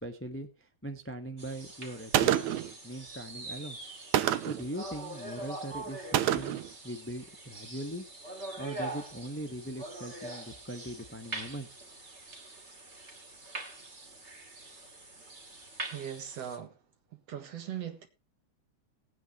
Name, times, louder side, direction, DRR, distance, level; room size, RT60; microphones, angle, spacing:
voice 1, 0.0-2.3 2.8-3.8 4.4-8.0 8.6-11.7, right 1 dB, 20° left, 0.3 m, -40 dB
sound 1, 1.4-16.6, right 2 dB, 25° right, 2.5 m, -44 dB
Gunshot gunfire, 2.1-2.7 4.1-4.7 6.1-6.7, right 12 dB, 75° right, 2.1 m, -27 dB
voice 2, 15.9-16.8 17.1-18.1, right 9 dB, 60° right, 2.6 m, -39 dB
19.0 x 9.2 x 3.1 m
omnidirectional pair, 3.4 m